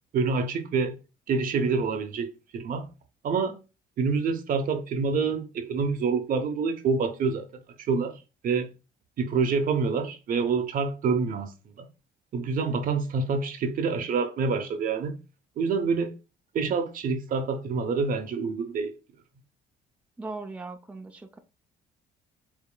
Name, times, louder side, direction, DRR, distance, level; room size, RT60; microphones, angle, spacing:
voice 1, 0.1-1.0 1.3-2.9 3.2-3.6 4.0-7.5 7.9-8.7 9.2-11.5 11.8-11.9 12.3-15.2 15.6-16.1 16.5-18.9, right 5 dB, 55° right, 0.8 m, -27 dB
voice 2, 20.2-21.4, right 3 dB, 10° right, 0.5 m, -38 dB
7.1 x 2.8 x 2.2 m
cardioid pair, 110°, 17 cm